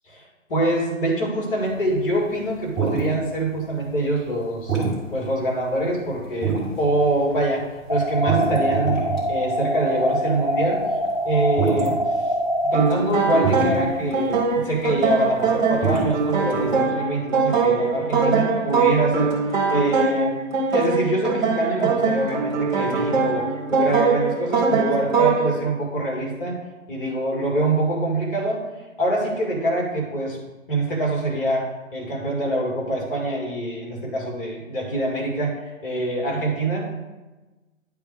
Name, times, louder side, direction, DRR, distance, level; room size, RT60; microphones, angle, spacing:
voice 1, 0.1-4.8 5.1-10.9 11.2-12.3 12.6-19.3 19.7-20.4 20.7-26.6 26.9-28.7 29.0-30.4 30.7-36.9, right 1 dB, 45° left, -2 dB, 2.2 m, -25 dB
sound 1, 1.6-4.3 4.6-16.8, right 5 dB, ahead, 1.4 m, -27 dB
sound 2, 7.9-12.9, equal, 25° left, 0.3 m, -24 dB
sound 3, 12.7-25.5, right 4 dB, 35° right, 1.7 m, -22 dB
10.0 x 3.5 x 4.8 m, 1.1 s
figure-of-eight pair, 135°, 39 cm